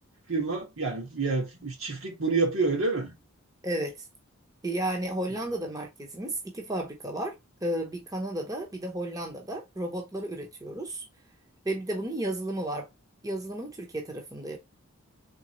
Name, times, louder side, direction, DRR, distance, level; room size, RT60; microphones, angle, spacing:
voice 1, 0.3-3.1, right 3 dB, 70° right, 1.7 m, -28 dB
voice 2, 3.6-4.0 4.6-7.3 7.6-11.0 11.6-12.9 13.2-14.6, right 1 dB, 15° right, 0.7 m, -33 dB
3.9 x 3.5 x 3.0 m
head